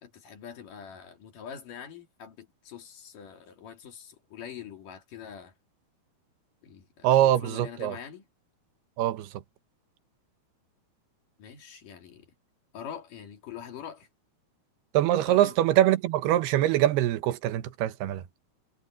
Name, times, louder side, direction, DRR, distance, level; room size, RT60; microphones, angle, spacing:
voice 1, 0.0-5.5 6.6-8.2 11.4-12.3 12.7-14.1 15.3-15.6, left 8 dB, 55° left, 3.8 m, -44 dB
voice 2, 7.0-7.9 9.0-9.3 14.9-18.2, right 13 dB, 80° right, 2.9 m, -23 dB
omnidirectional pair, 4.7 m